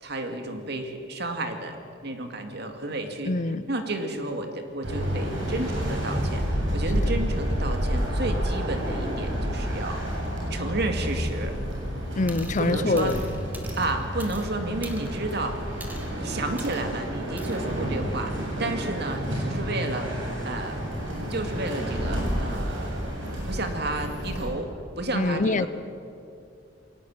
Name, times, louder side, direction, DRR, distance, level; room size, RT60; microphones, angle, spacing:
voice 1, 0.0-3.3 3.7-10.0 10.5-11.6 12.6-13.1 13.8-15.6 16.1-23.2 23.5-24.7 25.0-25.7, right 2 dB, 60° right, 5 dB, 2.3 m, -32 dB
voice 2, 3.3-3.6 6.9-7.1 12.1-13.2 25.1-25.7, left 2 dB, 40° left, 14 dB, 0.7 m, -25 dB
sound 1, 4.8-24.5, equal, 85° right, 7.8 m, -30 dB
sound 2, 12.3-12.6 13.0-14.5 14.8-15.3 15.8-16.1 16.6-16.8 17.4-17.6, right 1 dB, 10° right, 2.0 m, -44 dB
21.5 x 18.5 x 8.9 m, 2.5 s
head